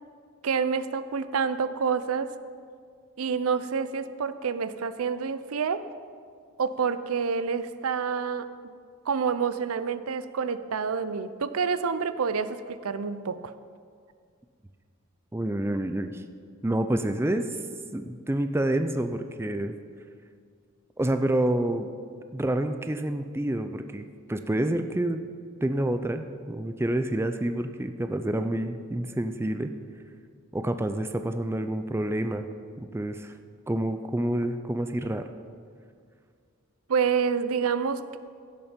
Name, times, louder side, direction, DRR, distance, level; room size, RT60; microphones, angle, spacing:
voice 1, 0.4-2.3 3.2-5.8 6.6-8.5 9.1-13.5 36.9-38.2, right 6 dB, 80° right, 13 dB, 0.5 m, -28 dB
voice 2, 15.3-16.2 16.6-17.6 17.9-19.8 21.0-21.9 22.3-25.2 25.6-29.7 30.5-32.5 32.8-33.4 33.7-35.3, right 1 dB, 10° right, 8 dB, 0.4 m, -28 dB
16.0 x 7.1 x 5.1 m, 2.1 s
head